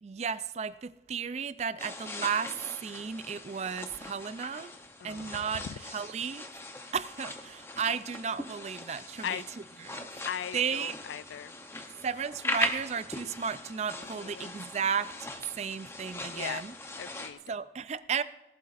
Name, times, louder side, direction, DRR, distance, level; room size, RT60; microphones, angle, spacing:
voice 1, 0.0-4.7 5.0-5.7 5.9-6.5 6.9-9.4 9.8-10.3 10.5-10.9 12.0-15.3 15.5-16.7 17.5-18.2, right 6 dB, 35° right, 15 dB, 0.3 m, -34 dB
sound 1, 1.8-17.3, left 2 dB, 15° left, 0.7 m, -40 dB
voice 2, 5.0-5.8 9.2-9.4 10.2-11.5 14.0-14.5 16.3-16.6 17.0-17.4, left 9 dB, 75° left, 19 dB, 0.3 m, -39 dB
18.0 x 11.5 x 2.5 m, 1.1 s
head